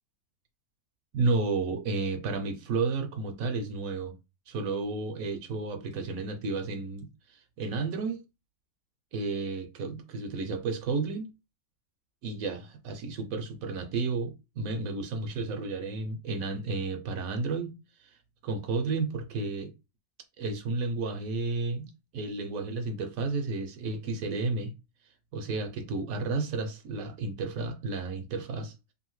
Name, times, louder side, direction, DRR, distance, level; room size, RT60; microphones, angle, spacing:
voice 1, 1.1-4.1 4.5-8.2 9.1-11.3 12.2-17.7 18.0-19.7 20.4-24.7 25.3-28.7, right 3 dB, 75° right, 1.0 m, -32 dB
2.7 x 2.4 x 3.0 m
omnidirectional pair, 1.6 m